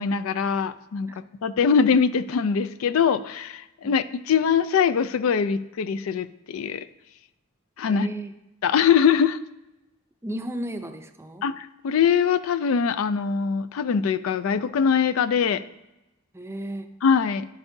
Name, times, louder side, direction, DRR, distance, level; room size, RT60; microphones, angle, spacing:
voice 1, 0.0-6.9 7.8-8.1 8.6-9.4 11.4-15.6 17.0-17.5, left 6 dB, 70° left, 14 dB, 0.4 m, -22 dB
voice 2, 7.9-8.3 10.2-11.4 16.3-16.9, right 1 dB, 10° right, 7 dB, 0.5 m, -34 dB
10.5 x 8.0 x 2.7 m, 0.94 s
head